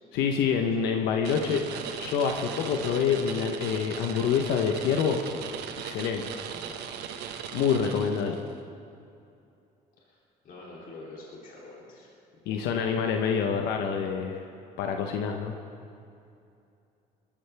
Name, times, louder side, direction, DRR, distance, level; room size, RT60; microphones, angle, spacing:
voice 1, 0.1-1.6 2.0-5.2 5.8-6.2 7.5-8.4 12.5-14.4 14.8-15.5, left 7 dB, 90° left, 4 dB, 1.0 m, -26 dB
voice 2, 0.7-1.4 6.4-6.8 7.6-8.6 10.0-12.1 12.5-12.7, left 2 dB, 55° left, -4 dB, 3.2 m, -48 dB
sound 1, 1.2-8.5, right 8 dB, 80° right, 1.1 m, -38 dB
20.5 x 14.0 x 3.5 m, 2.6 s
cardioid pair, 110°, 17 cm